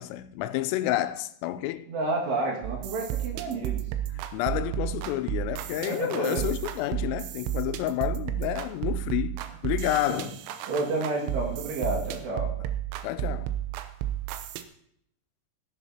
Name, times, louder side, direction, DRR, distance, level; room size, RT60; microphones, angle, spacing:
voice 1, 0.0-1.9 4.1-9.4 9.6-10.3 13.0-13.5, left 14 dB, 90° left, 3.3 m, -30 dB
voice 2, 1.9-3.9 5.8-6.4 10.7-12.5, right 2 dB, 60° right, 3.9 m, -30 dB
sound 1, 2.6-14.6, right 12 dB, 85° right, 3.4 m, -32 dB
16.5 x 11.0 x 2.9 m
omnidirectional pair, 5.8 m